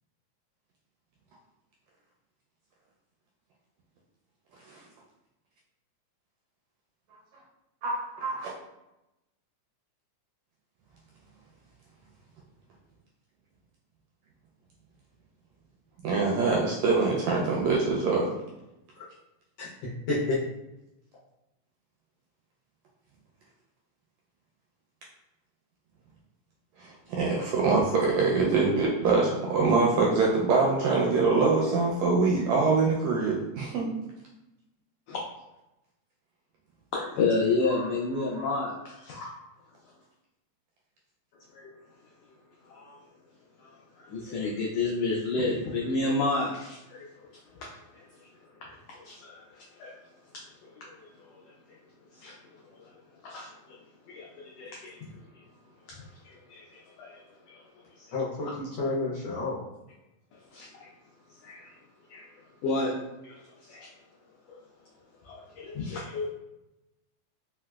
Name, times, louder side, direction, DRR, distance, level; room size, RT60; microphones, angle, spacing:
voice 1, 8.2-8.5 16.0-18.3 26.8-33.9 37.7-37.8 38.3-38.5, right 4 dB, 80° right, -3 dB, 1.6 m, -24 dB
voice 2, 20.1-20.4 58.1-59.6, left 2 dB, 75° left, -8 dB, 1.5 m, -29 dB
voice 3, 36.9-39.3 41.5-41.7 42.6-43.0 43.6-48.1 48.6-50.0 50.7-51.8 52.1-52.9 53.2-53.8 54.1-55.4 55.9-57.6 58.0-58.1 60.3-60.9 61.4-61.7 62.1-62.2 62.6-62.9 63.2-63.9 64.5-64.6 65.2-66.3, left 3 dB, 90° left, -3 dB, 1.4 m, -32 dB
4.7 x 2.0 x 2.2 m, 0.94 s
omnidirectional pair, 3.4 m